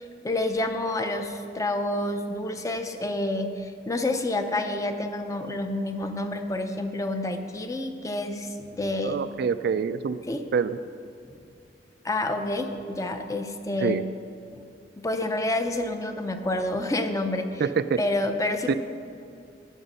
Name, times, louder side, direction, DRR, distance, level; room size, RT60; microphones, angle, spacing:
voice 1, 0.0-9.2 10.3-10.4 12.0-14.0 15.0-17.6 18.0-18.7, left 2 dB, 20° left, 6 dB, 0.6 m, -28 dB
voice 2, 9.0-10.2 10.5-10.8 13.8-14.0 17.6-18.0 18.7-18.8, right 6 dB, 60° right, 13 dB, 0.3 m, -25 dB
11.0 x 7.8 x 5.5 m, 2.4 s
head